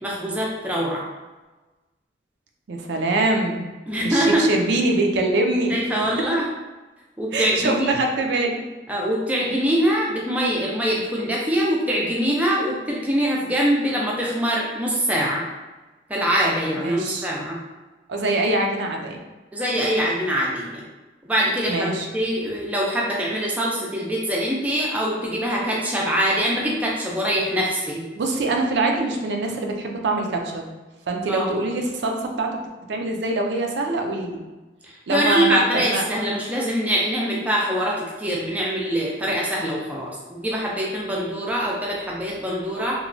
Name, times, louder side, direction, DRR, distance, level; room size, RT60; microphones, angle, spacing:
voice 1, 0.0-1.0 3.9-4.5 5.7-6.5 7.2-7.9 8.9-15.4 16.1-17.6 19.5-20.8 21.3-28.1 31.3-31.5 34.8-43.1, equal, 10° right, -4 dB, 0.3 m, -23 dB
voice 2, 2.7-3.7 4.0-5.8 7.3-8.6 16.8-17.3 18.1-19.2 21.7-22.1 28.1-30.7 31.1-32.5 32.9-34.4 35.1-36.0, right 2 dB, 75° right, 2 dB, 0.4 m, -24 dB
3.0 x 2.2 x 2.5 m, 1.2 s
head